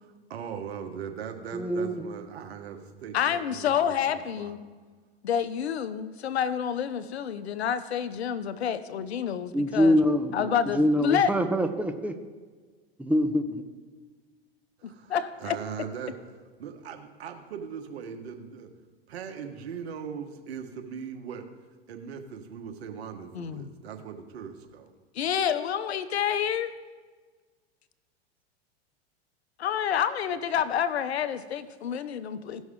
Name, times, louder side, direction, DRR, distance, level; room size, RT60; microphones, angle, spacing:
voice 1, 0.3-4.5 14.8-16.1 16.6-18.7 19.1-21.5 21.9-24.9, right 7 dB, 80° right, 5 dB, 1.4 m, -39 dB
voice 2, 1.5-2.0 9.5-12.1 13.0-13.6, equal, 5° right, 6 dB, 0.9 m, -25 dB
voice 3, 3.1-4.6 5.2-10.0 10.3-11.3 14.8-15.6 23.3-23.7 25.1-26.7 29.6-32.6, left 8 dB, 85° left, 12 dB, 0.8 m, -28 dB
16.5 x 6.1 x 3.7 m, 1.4 s
hypercardioid pair, 105°, 31 cm